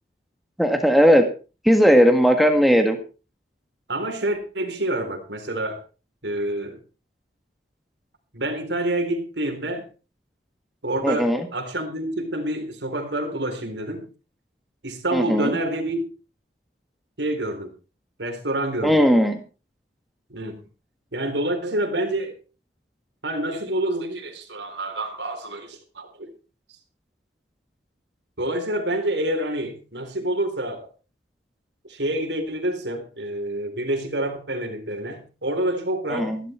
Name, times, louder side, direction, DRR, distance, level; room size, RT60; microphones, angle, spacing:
voice 1, 0.6-1.2 1.6-3.0 11.0-11.4 15.1-15.5 18.8-19.4 36.1-36.4, equal, ahead, 1.7 m, -17 dB
voice 2, 3.9-5.8 6.2-6.8 8.3-9.8 10.8-14.0 14.8-16.1 17.2-17.7 18.2-19.0 20.3-20.6 21.1-22.4 23.2-26.3 28.4-30.9 31.9-36.4, right 1 dB, 80° right, 3.9 m, -27 dB
15.0 x 12.5 x 4.5 m
head